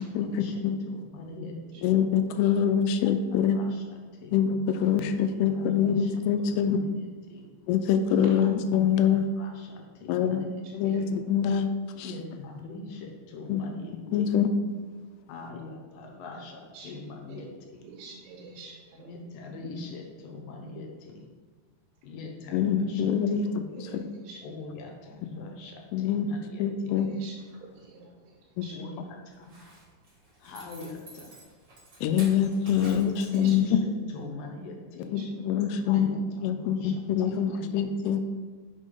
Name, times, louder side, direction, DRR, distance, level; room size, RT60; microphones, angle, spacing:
voice 1, 0.2-1.9 3.0-4.4 5.2-6.1 6.4-7.5 8.4-8.5 9.1-10.5 10.8-11.0 12.0-14.3 15.3-17.8 19.0-21.2 22.0-23.4 24.4-26.9 28.7-29.5 30.4-31.3 32.8-35.2 35.8-36.2 36.5-38.1, left 3 dB, 70° left, 1 dB, 2.2 m, -43 dB
voice 2, 1.8-3.6 4.3-6.8 7.7-9.3 10.1-10.4 10.7-11.7 12.0-12.1 13.5-13.6 14.1-14.5 22.5-24.1 25.9-27.1 32.0-33.8 35.1-38.2, left 8 dB, 85° left, 8 dB, 2.6 m, -25 dB
voice 3, 17.9-19.1 23.7-24.4 27.1-27.3 27.8-28.1 28.6-28.7 33.3-33.6 35.2-35.3, right 4 dB, 85° right, -2 dB, 3.0 m, -46 dB
Zipper (clothing), 29.3-33.9 34.3-34.4, right 1 dB, 35° right, 1.9 m, -49 dB
5.4 x 5.3 x 5.2 m, 1.4 s
omnidirectional pair, 4.6 m